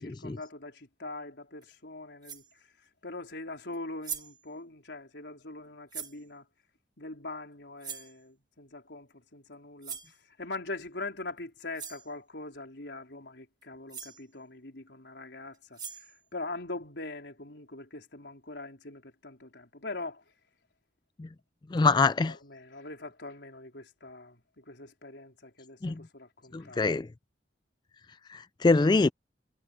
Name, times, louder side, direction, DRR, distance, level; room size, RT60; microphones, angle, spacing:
voice 1, 0.0-2.7 3.0-6.5 7.0-20.2 21.8-22.0 22.2-26.9, left 2 dB, 85° left, 4.0 m, -42 dB
sound 1, 1.6-1.7 2.2-2.5 3.7-3.8 4.0-4.4 5.9-6.2 7.8-8.2 9.8-10.2 11.4-11.5 11.8-12.1 13.6-13.7 13.9-14.2 15.5-16.2, right 7 dB, 25° right, 1.8 m, -41 dB
voice 2, 21.7-22.3 25.8-25.9 26.5-27.1 28.3-29.1, left 3 dB, 25° left, 0.3 m, -24 dB
head